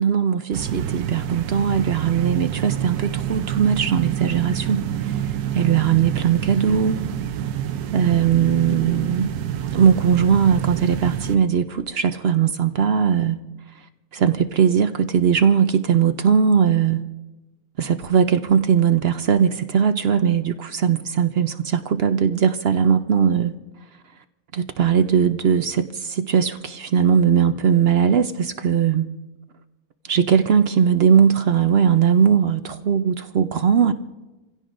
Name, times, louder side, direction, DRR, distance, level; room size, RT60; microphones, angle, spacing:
voice 1, 0.0-5.1 5.5-7.0 7.9-9.3 9.7-13.4 14.1-17.0 17.8-23.5 24.5-29.1 30.1-33.9, right 7 dB, 60° right, 0.7 m, -19 dB
sound 1, 0.5-11.4, right 10 dB, 85° right, 1.2 m, -27 dB
27.5 x 16.0 x 2.5 m
omnidirectional pair, 1.6 m